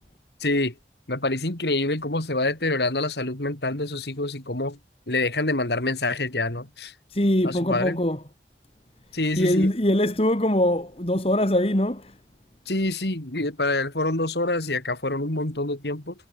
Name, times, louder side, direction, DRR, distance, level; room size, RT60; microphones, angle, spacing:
voice 1, 0.4-0.7 1.1-4.8 5.1-6.9 7.4-8.0 9.1-9.7 12.7-16.1, left 2 dB, 75° left, 3.2 m, -26 dB
voice 2, 7.1-8.2 9.4-12.1, left 1 dB, 35° left, 2.1 m, -22 dB
head